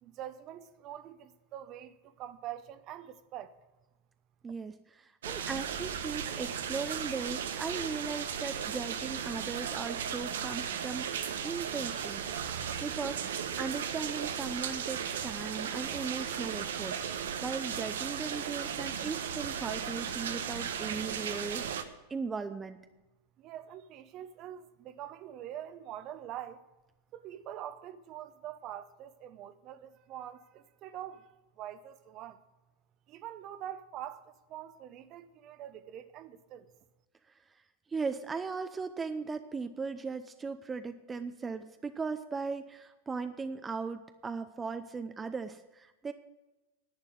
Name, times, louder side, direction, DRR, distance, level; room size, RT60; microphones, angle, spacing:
voice 1, 0.0-3.6 23.4-26.7 27.1-32.4 33.1-36.7, right 11 dB, 45° right, 0.9 m, -44 dB
voice 2, 4.4-11.1 11.4-22.8 37.9-46.1, right 4 dB, 20° right, 0.6 m, -38 dB
sound 1, 5.2-21.8, right 8 dB, 80° right, 1.0 m, -36 dB
10.5 x 8.9 x 7.7 m
hypercardioid pair, 105°, 0 cm